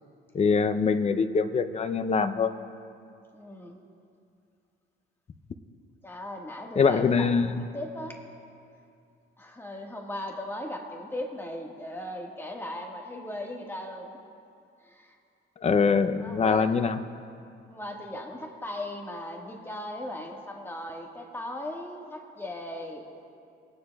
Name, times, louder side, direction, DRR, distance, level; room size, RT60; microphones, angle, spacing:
voice 1, 0.3-2.5 6.8-7.6 15.6-17.0, left 5 dB, 35° left, 10 dB, 0.6 m, -23 dB
voice 2, 3.3-3.8 6.0-8.2 9.4-14.2 14.8-15.1 15.9-16.8 17.7-23.1, left 1 dB, 10° left, 0 dB, 1.6 m, -38 dB
21.5 x 9.7 x 2.3 m, 2.4 s
cardioid pair, 90°, 20 cm